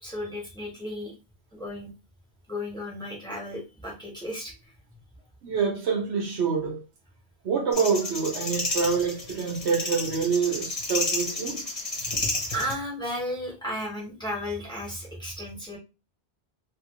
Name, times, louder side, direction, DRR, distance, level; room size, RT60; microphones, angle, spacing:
voice 1, 0.0-1.1 1.5-1.9 2.5-4.5 12.5-15.8, left 1 dB, 5° left, 1.4 m, -34 dB
voice 2, 5.4-6.8 7.4-11.6, right 5 dB, 85° right, 1.3 m, -26 dB
sound 1, 7.7-12.7, left 2 dB, 35° left, 1.1 m, -31 dB
2.9 x 2.9 x 3.1 m
omnidirectional pair, 1.1 m